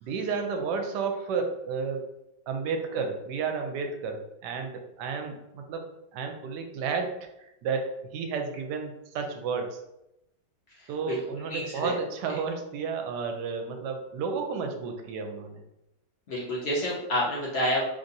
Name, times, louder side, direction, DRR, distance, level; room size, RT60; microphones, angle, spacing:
voice 1, 0.0-2.0 2.5-5.8 6.1-9.8 10.9-15.6, right 5 dB, 75° right, 5 dB, 1.1 m, -32 dB
voice 2, 10.7-11.2 11.5-11.9 16.3-17.9, left 1 dB, 65° left, -5 dB, 0.6 m, -29 dB
3.3 x 2.6 x 2.6 m, 0.87 s
omnidirectional pair, 1.9 m